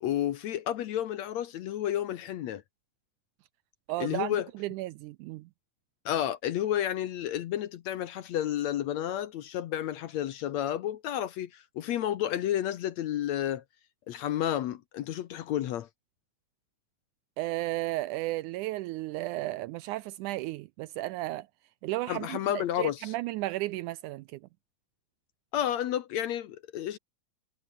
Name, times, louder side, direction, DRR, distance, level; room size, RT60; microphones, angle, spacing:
voice 1, 0.0-2.6 4.0-4.5 6.1-13.6 14.1-15.9 22.1-23.1 25.5-27.0, left 11 dB, 65° left, 1.9 m, -31 dB
voice 2, 3.9-5.5 17.4-21.5 21.8-24.4, right 17 dB, 80° right, 1.8 m, -34 dB
omnidirectional pair, 3.9 m